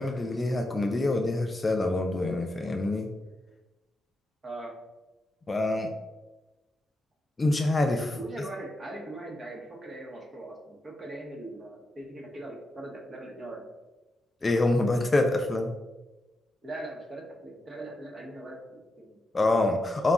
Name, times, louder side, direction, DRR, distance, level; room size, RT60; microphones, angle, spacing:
voice 1, 0.0-3.1 5.5-5.9 7.4-8.2 14.4-15.7 19.3-20.1, left 2 dB, 25° left, 4 dB, 0.4 m, -26 dB
voice 2, 4.4-4.7 8.2-13.6 16.6-19.2, right 2 dB, 35° right, 0 dB, 0.9 m, -40 dB
3.9 x 2.2 x 3.5 m, 1.1 s
cardioid pair, 90°, 0 cm